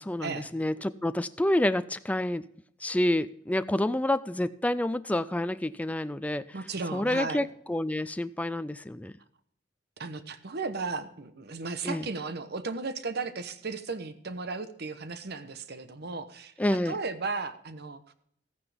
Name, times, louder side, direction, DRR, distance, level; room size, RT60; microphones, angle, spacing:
voice 1, 0.0-2.4 2.8-6.4 6.9-9.1 11.8-12.0 16.6-16.9, left 1 dB, 5° left, 13 dB, 0.3 m, -28 dB
voice 2, 6.5-7.5 10.0-18.1, right 4 dB, 55° right, 11 dB, 1.0 m, -35 dB
14.0 x 9.6 x 3.4 m, 0.68 s
head